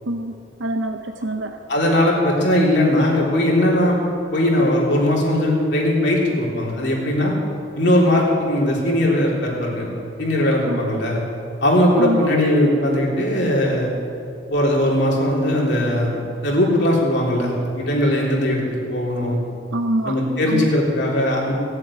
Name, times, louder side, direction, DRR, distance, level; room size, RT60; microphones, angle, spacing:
voice 1, 0.6-1.6 10.7-10.9 12.0-12.3 19.7-20.2 20.5-20.7, right 1 dB, 70° right, 6 dB, 0.7 m, -25 dB
voice 2, 1.7-4.0 4.3-7.3 7.8-9.9 10.2-11.2 11.6-13.9 14.5-16.1 16.4-19.4 20.0-21.5, left 1 dB, 60° left, -3 dB, 3.5 m, -19 dB
17.5 x 7.7 x 9.8 m, 2.6 s
head